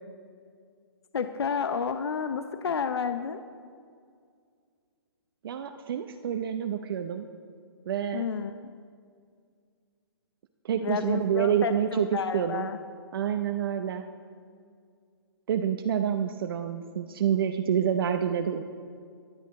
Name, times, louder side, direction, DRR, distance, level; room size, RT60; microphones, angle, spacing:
voice 1, 1.1-3.4 8.1-8.5 10.8-12.8, left 6 dB, 75° left, 9 dB, 0.8 m, -30 dB
voice 2, 5.4-7.3 7.9-8.2 10.6-12.1 12.3-12.7 13.1-14.1 15.5-18.6, right 9 dB, 60° right, 6 dB, 0.8 m, -28 dB
23.0 x 8.5 x 4.2 m, 2.2 s
hypercardioid pair, 135°, 14 cm